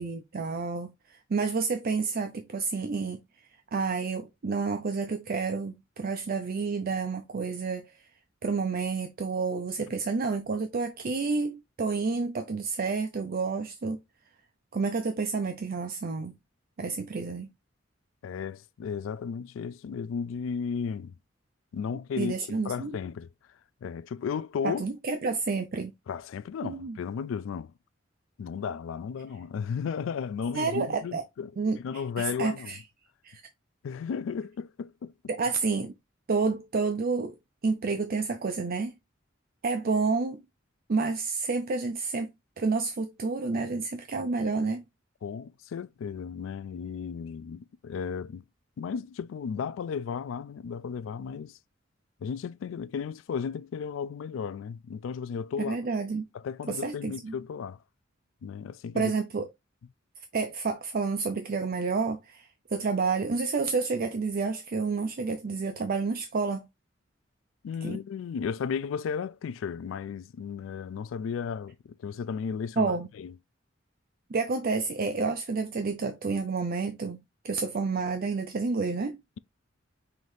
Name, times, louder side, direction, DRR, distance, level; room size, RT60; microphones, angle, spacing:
voice 1, 0.0-3.2 3.7-7.9 8.4-14.0 14.7-16.3 16.8-17.5 22.2-23.0 24.6-25.9 26.6-27.0 30.5-31.2 31.6-32.8 33.2-33.4 35.3-35.9 36.3-37.4 37.6-38.9 39.6-40.4 40.9-42.3 42.6-44.8 55.6-56.2 56.7-57.3 58.9-59.5 60.3-66.7 67.8-68.0 72.8-73.1 74.3-79.2, right 4 dB, 50° right, 0.5 m, -29 dB
voice 2, 18.2-21.2 21.7-22.3 22.6-23.3 23.8-24.8 26.1-27.7 28.4-31.5 31.8-32.8 33.8-35.1 45.2-48.4 48.8-51.6 52.2-55.8 56.3-57.8 58.4-59.1 67.6-73.3, left 6 dB, 80° left, 0.3 m, -34 dB
5.7 x 2.6 x 3.2 m
head